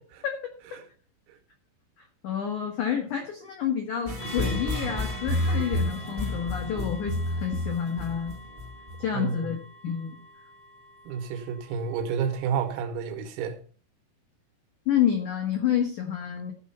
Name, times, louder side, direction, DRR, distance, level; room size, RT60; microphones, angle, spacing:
voice 1, 0.2-0.8 2.0-8.3 9.0-9.6 9.8-10.2 14.8-16.5, left 9 dB, 80° left, 1.7 m, -29 dB
sound 1, 4.1-9.1, left 1 dB, 55° right, 0.5 m, -30 dB
sound 2, 4.2-12.9, left 2 dB, 35° left, 3.8 m, -46 dB
voice 2, 9.1-9.5 11.1-13.6, right 7 dB, 85° right, 3.9 m, -30 dB
15.5 x 5.2 x 5.6 m
omnidirectional pair, 5.9 m